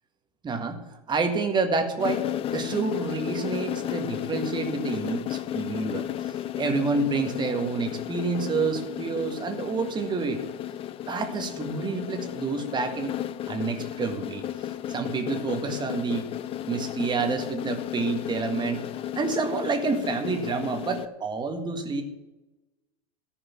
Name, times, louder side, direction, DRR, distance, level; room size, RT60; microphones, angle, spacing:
voice 1, 0.4-0.8 1.1-2.3 2.5-10.4 11.1-13.1 13.5-14.4 14.9-16.3 16.7-18.8 19.2-22.0, right 4 dB, 20° right, 5 dB, 1.7 m, -28 dB
sound 1, 2.0-21.1, left 11 dB, 30° left, 0.4 m, -33 dB
14.5 x 5.1 x 7.5 m, 1.0 s
hypercardioid pair, 95°, 20 cm